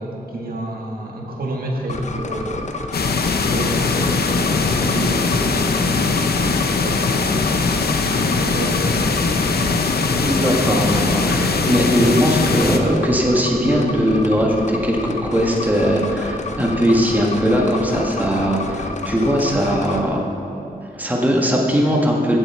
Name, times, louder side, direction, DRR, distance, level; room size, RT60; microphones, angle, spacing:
voice 1, 0.0-2.7 3.3-6.5 6.8-7.6 8.2-9.4 10.0-10.6 11.1-11.7, right 1 dB, 65° right, -1 dB, 1.7 m, -30 dB
sound 1, 1.9-20.0, left 3 dB, 45° left, 0.7 m, -29 dB
sound 2, 2.9-12.8, left 4 dB, 80° left, 0.8 m, -20 dB
voice 2, 10.2-20.3 21.0-22.4, equal, 10° right, -1 dB, 1.4 m, -19 dB
15.5 x 7.7 x 4.4 m, 3.0 s
wide cardioid pair, 100°, 16 cm